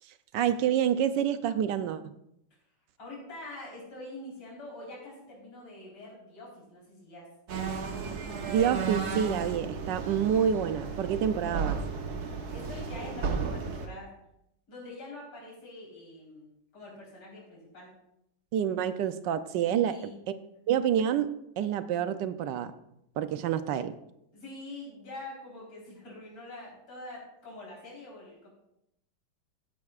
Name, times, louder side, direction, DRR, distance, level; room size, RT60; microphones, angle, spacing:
voice 1, 0.0-2.2 8.5-11.8 18.5-20.3 20.7-22.7 23.2-24.0, right 9 dB, 70° right, 11 dB, 1.1 m, -28 dB
voice 2, 3.0-7.3 12.5-14.1 14.7-16.5 16.7-17.9 19.8-20.1 24.3-28.5, left 2 dB, 85° left, -5 dB, 4.9 m, -45 dB
sound 1, 7.5-13.9, right 5 dB, 55° right, 1.5 m, -34 dB
16.0 x 10.5 x 2.4 m, 0.80 s
omnidirectional pair, 2.2 m